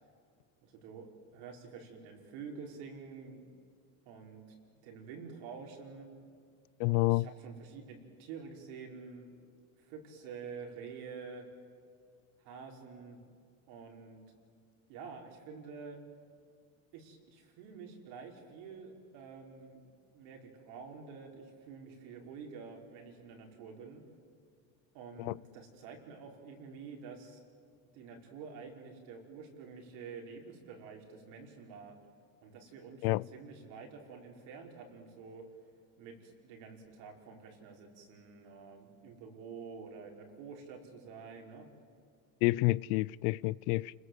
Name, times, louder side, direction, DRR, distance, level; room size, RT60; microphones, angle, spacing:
voice 1, 0.6-1.1 1.3-3.4 4.1-4.4 4.7-6.1 7.1-9.3 9.8-11.4 12.4-13.2 13.7-14.2 14.9-16.0 16.9-19.9 20.1-24.0 24.9-27.4 27.9-31.9 32.4-35.4 36.0-41.7, right 5 dB, 65° right, 5.4 m, -48 dB
voice 2, 6.8-7.3 25.2-25.4 33.0-33.2 42.4-43.9, left 20 dB, 60° left, 0.6 m, -29 dB
29.5 x 21.0 x 8.1 m
supercardioid pair, 100°, 42 cm